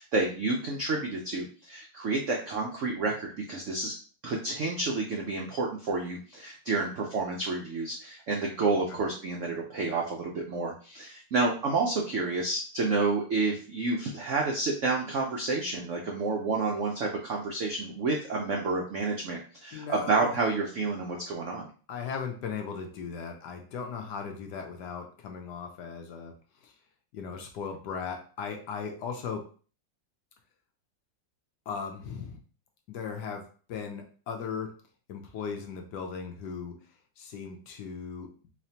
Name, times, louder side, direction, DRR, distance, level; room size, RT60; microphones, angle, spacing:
voice 1, 0.0-3.9 4.2-21.7, right 3 dB, 75° right, 0 dB, 0.6 m, -29 dB
voice 2, 19.7-20.4 21.9-26.3 26.6-26.7 27.1-29.5 31.7-32.4 32.9-34.8 35.1-36.8 37.2-38.3, left 6 dB, 70° left, 3 dB, 1.1 m, -37 dB
4.1 x 3.0 x 2.8 m, 0.39 s
omnidirectional pair, 2.1 m